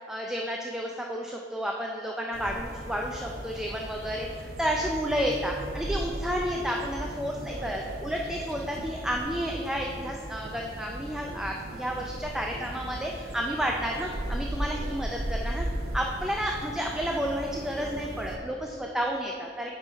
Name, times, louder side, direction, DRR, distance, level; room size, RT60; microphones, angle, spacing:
voice 1, 0.1-15.7 15.9-19.7, equal, 5° right, 0 dB, 0.4 m, -31 dB
sound 1, 2.3-18.4, right 1 dB, 55° right, 0.8 m, -37 dB
8.4 x 4.6 x 4.5 m, 2.3 s
head